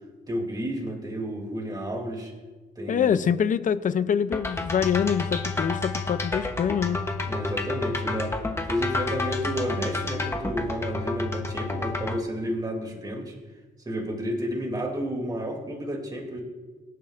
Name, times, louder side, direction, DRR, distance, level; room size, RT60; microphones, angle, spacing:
voice 1, 0.3-2.3 2.8-3.1 7.2-8.4 8.7-13.3 13.9-16.4, equal, 20° right, 2.7 m, -31 dB
voice 2, 2.9-7.1, left 7 dB, 45° left, 0.5 m, -25 dB
sound 1, 4.3-12.2, left 3 dB, 15° left, 0.9 m, -30 dB
23.5 x 11.5 x 2.5 m
wide cardioid pair, 160°, 19 cm